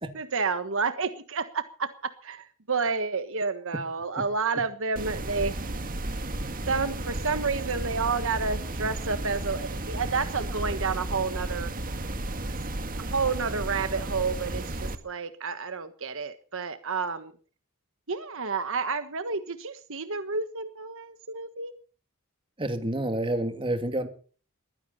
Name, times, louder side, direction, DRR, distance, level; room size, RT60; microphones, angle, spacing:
voice 1, 0.1-5.5 6.7-11.7 13.1-17.3 18.1-21.7, right 4 dB, 60° right, 10 dB, 1.4 m, -30 dB
sound 1, 5.0-15.0, right 1 dB, 40° right, 1.9 m, -33 dB
voice 2, 22.6-24.1, right 1 dB, 25° right, 7 dB, 2.7 m, -28 dB
22.0 x 15.5 x 4.3 m, 0.41 s
head